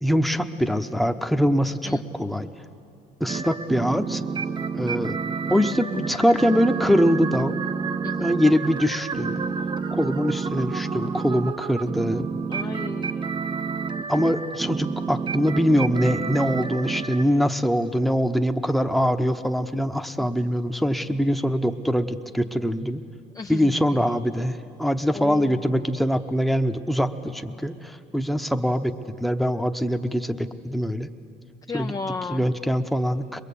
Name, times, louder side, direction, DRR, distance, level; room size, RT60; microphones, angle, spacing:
voice 1, 0.0-2.5 3.2-4.2 4.7-5.2 5.5-7.6 8.2-9.4 9.9-12.3 14.1-23.0 23.5-31.1 31.7-31.9 32.3-33.4, equal, ahead, 7 dB, 0.9 m, -23 dB
voice 2, 1.6-2.0 8.0-8.3 12.5-13.3 20.2-20.5 23.3-23.7 25.1-25.7 31.7-32.5, left 4 dB, 20° left, 6 dB, 0.5 m, -34 dB
sound 1, 3.3-17.2, right 5 dB, 30° right, 0.7 m, -29 dB
22.0 x 22.0 x 8.5 m, 2.6 s
cardioid pair, 110°, 17 cm